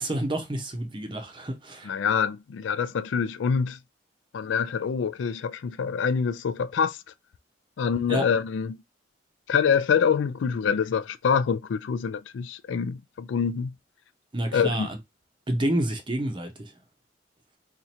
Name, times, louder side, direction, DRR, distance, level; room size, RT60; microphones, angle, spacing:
voice 1, 0.0-1.9 8.1-8.3 14.3-15.0 15.5-16.7, right 1 dB, 25° right, 0.6 m, -29 dB
voice 2, 1.9-3.8 4.3-7.0 7.8-8.8 9.5-13.7 14.5-14.9, left 6 dB, 75° left, 0.3 m, -25 dB
2.8 x 2.5 x 4.2 m
head